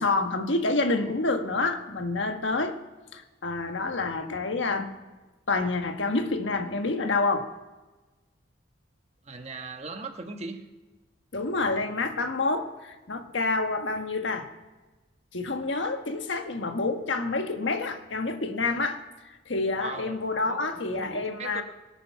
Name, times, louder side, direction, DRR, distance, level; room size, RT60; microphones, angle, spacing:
voice 1, 0.0-2.8 3.1-4.9 5.5-7.5 11.3-14.5 15.3-19.0 19.5-21.6, left 3 dB, 70° left, 6 dB, 1.4 m, -28 dB
voice 2, 9.2-10.6 19.7-20.2 20.5-21.6, right 3 dB, 35° right, 5 dB, 1.3 m, -39 dB
24.5 x 9.1 x 5.8 m, 1.2 s
head